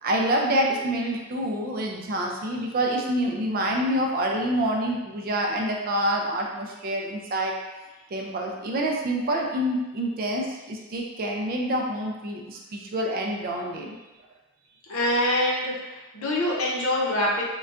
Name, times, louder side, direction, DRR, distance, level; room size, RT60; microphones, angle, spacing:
voice 1, 0.0-7.5 8.1-14.0, right 1 dB, 40° right, 0 dB, 0.4 m, -27 dB
voice 2, 14.9-17.4, left 1 dB, 65° left, -4 dB, 0.7 m, -25 dB
3.8 x 2.2 x 2.4 m, 1.1 s
head